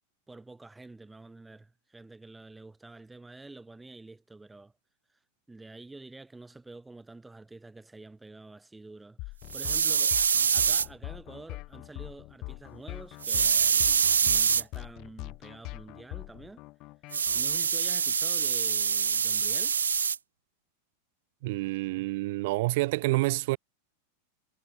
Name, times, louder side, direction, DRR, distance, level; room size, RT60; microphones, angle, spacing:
voice 1, 0.3-4.7 5.5-10.2 10.5-16.6 17.3-19.8, right 2 dB, 10° right, 3.1 m, -48 dB
sound 1, 9.2-17.6, left 22 dB, 40° left, 0.5 m, -42 dB
sound 2, 9.5-10.9 13.2-14.6 17.1-20.2, right 6 dB, 70° right, 0.5 m, -25 dB
voice 2, 21.4-23.6, right 21 dB, 50° right, 0.9 m, -28 dB
figure-of-eight pair, 90°, 0 cm